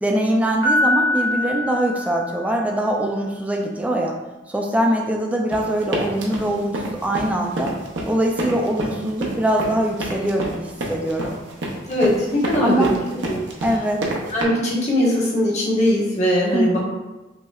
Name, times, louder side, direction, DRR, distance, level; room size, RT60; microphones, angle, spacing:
voice 1, 0.0-4.2 4.5-7.7 8.1-11.2 12.6-12.9 13.6-14.0 16.5-16.8, right 1 dB, 10° right, 0 dB, 0.3 m, -22 dB
Piano, 0.6-2.7, left 1 dB, 75° left, 0.9 m, -23 dB
sound 1, 5.5-14.4, right 1 dB, 80° right, 0.6 m, -28 dB
voice 2, 11.9-12.9 13.2-13.4 14.3-16.8, equal, 40° left, -5 dB, 1.0 m, -20 dB
5.4 x 2.1 x 2.3 m, 1.1 s
head